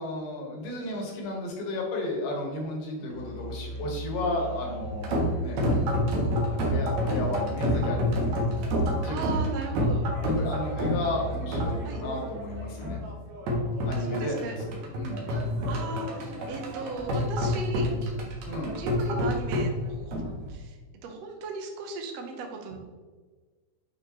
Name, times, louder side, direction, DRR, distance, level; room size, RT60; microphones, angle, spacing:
voice 1, 0.0-5.6 6.3-8.2 9.0-9.5 9.7-13.0 13.8-14.4 14.7-15.2 18.4-18.8, left 1 dB, 60° left, 0 dB, 2.8 m, -33 dB
Musical instrument, 3.1-13.2, equal, 80° left, 3.1 m, -37 dB
sound 1, 4.8-20.5, equal, 65° right, 2.0 m, -28 dB
voice 2, 9.1-10.1 11.8-12.0 14.0-14.6 15.7-17.9 18.8-20.2 20.5-20.8 21.0-22.8, right 4 dB, 80° right, 3 dB, 1.4 m, -37 dB
8.4 x 4.6 x 3.1 m, 1.4 s
omnidirectional pair, 4.4 m